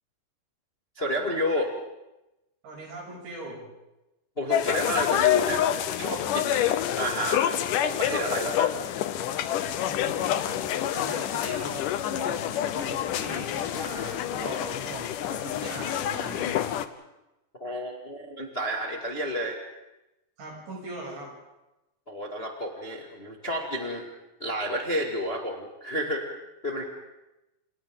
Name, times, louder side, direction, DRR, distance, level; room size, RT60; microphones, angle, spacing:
voice 1, 0.9-1.7 4.4-5.6 6.0-8.7 17.6-19.6 22.1-24.0 24.4-26.2 26.6-26.8, equal, 25° left, 0 dB, 1.3 m, -30 dB
voice 2, 2.6-3.6 9.8-16.7 20.4-21.3, right 2 dB, 80° right, -2 dB, 9.4 m, -40 dB
sound 1, 4.5-16.9, left 11 dB, 85° left, 1.8 m, -27 dB
29.5 x 29.0 x 3.8 m, 0.96 s
omnidirectional pair, 4.9 m